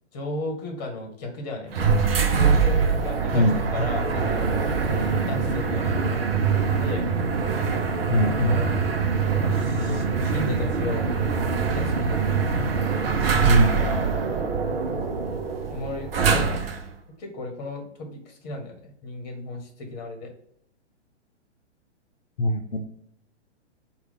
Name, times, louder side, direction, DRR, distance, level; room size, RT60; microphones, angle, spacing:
voice 1, 0.1-1.7 2.3-7.1 8.5-8.9 9.4-11.1 11.7-12.3 13.0-13.5 15.7-16.8 17.2-20.3, left 2 dB, 40° left, 3 dB, 1.1 m, -35 dB
sound 1, 1.7-16.9, right 5 dB, 60° right, 0.6 m, -24 dB
voice 2, 8.1-8.6 13.4-13.9 22.4-22.8, equal, 75° left, 2 dB, 0.7 m, -22 dB
4.7 x 2.4 x 3.4 m, 0.68 s
figure-of-eight pair, 115°, 34 cm